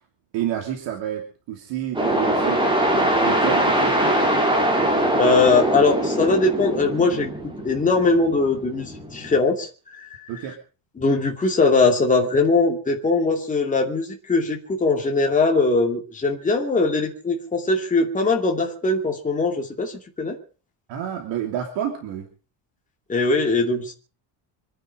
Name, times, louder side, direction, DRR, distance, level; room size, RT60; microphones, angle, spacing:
voice 1, 0.3-2.6 2.9-4.1 10.3-10.6 20.9-22.3, right 10 dB, 70° right, 3 dB, 2.9 m, -29 dB
sound 1, 1.9-9.4, right 1 dB, 10° right, 3.3 m, -22 dB
voice 2, 5.0-7.3 7.6-10.1 11.0-20.4 23.1-23.9, left 3 dB, 15° left, 2 dB, 2.5 m, -21 dB
26.0 x 9.7 x 5.3 m, 0.38 s
cardioid pair, 175°, 46 cm